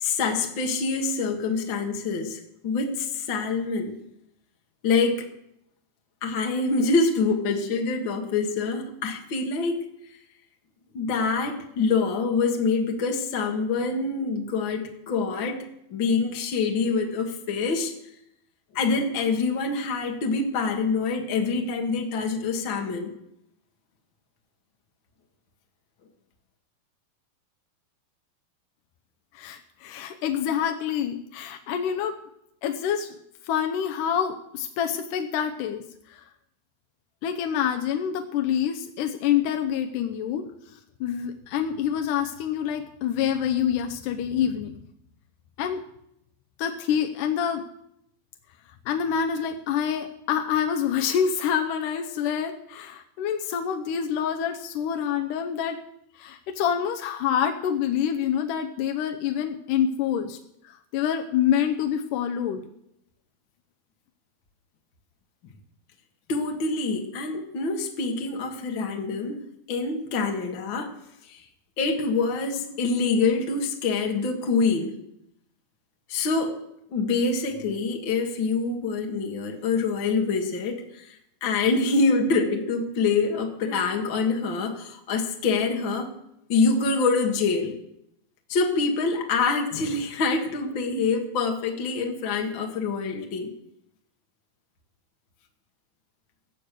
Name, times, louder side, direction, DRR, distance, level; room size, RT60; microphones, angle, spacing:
voice 1, 0.0-3.9 4.8-5.2 6.2-9.8 10.9-15.6 15.9-17.9 18.7-23.1 66.3-69.4 69.7-70.9 71.3-71.4 71.8-74.9 76.1-76.6 76.9-86.1 86.5-87.7 88.5-93.5, left 4 dB, 55° left, 2 dB, 1.4 m, -25 dB
voice 2, 29.3-32.2 32.6-33.2 33.4-36.3 37.2-44.8 45.6-45.8 46.6-47.6 48.9-55.8 56.1-60.4 60.6-62.7, left 8 dB, 75° left, 5 dB, 2.0 m, -27 dB
17.0 x 7.8 x 6.7 m, 0.78 s
omnidirectional pair, 4.3 m